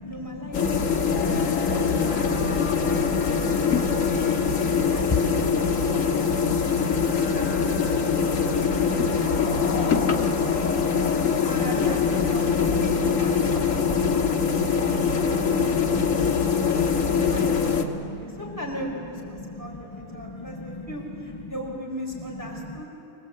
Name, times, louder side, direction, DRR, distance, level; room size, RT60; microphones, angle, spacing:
voice 1, 0.0-1.8 2.0-3.4 3.7-3.9 4.3-4.5 4.9-6.6 7.0-10.8 11.4-22.9, equal, 10° left, -3 dB, 5.1 m, -40 dB
sound 1, 0.5-17.8, left 6 dB, 55° left, 1.6 m, -23 dB
voice 2, 0.7-1.7 4.8-5.0 11.7-12.0 18.0-18.4 19.4-19.8 20.1-20.8 21.4-21.5 22.5-22.7, left 2 dB, 30° left, 3 dB, 0.6 m, -41 dB
sound 2, 1.1-12.5, left 5 dB, 85° left, 2.1 m, -42 dB
25.5 x 18.5 x 8.6 m, 2.8 s
omnidirectional pair, 1.7 m